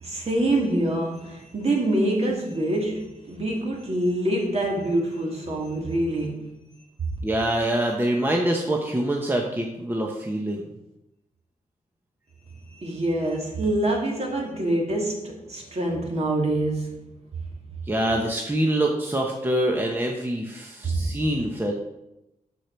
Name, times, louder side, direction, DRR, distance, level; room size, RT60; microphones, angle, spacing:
voice 1, 0.0-6.5 12.8-17.0 20.8-21.2, right 1 dB, 45° right, 2.2 m, -25 dB
voice 2, 7.2-10.6 17.9-21.7, right 1 dB, 15° right, 1.0 m, -25 dB
8.4 x 6.8 x 4.5 m
wide cardioid pair, 125°, 15 cm